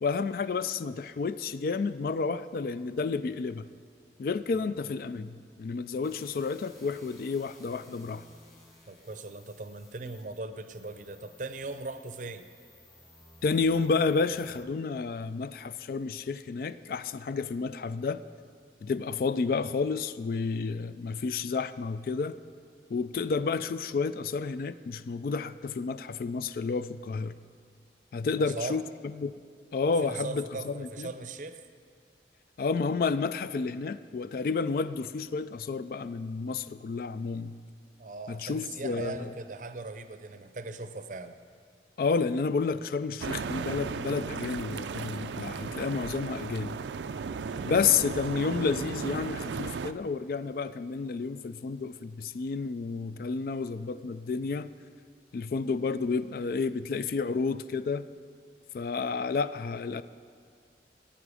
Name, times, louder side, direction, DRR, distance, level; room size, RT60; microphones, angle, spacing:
voice 1, 0.0-3.7 4.2-8.2 13.4-18.2 18.8-22.4 22.9-27.4 28.1-28.8 29.2-29.3 29.7-31.1 32.6-37.6 38.3-39.3 42.0-46.8 47.7-54.7 55.3-58.1 58.7-60.0, left 4 dB, 55° left, 14 dB, 0.3 m, -30 dB
sound 1, 6.0-14.6, left 1 dB, 15° left, 1.9 m, -57 dB
voice 2, 8.9-12.5 28.6-28.8 29.8-31.6 38.0-41.3 47.4-47.7, right 3 dB, 45° right, 10 dB, 0.6 m, -39 dB
sound 2, 43.2-49.9, right 5 dB, 90° right, 0.4 m, -35 dB
14.5 x 8.9 x 4.9 m, 2.1 s
head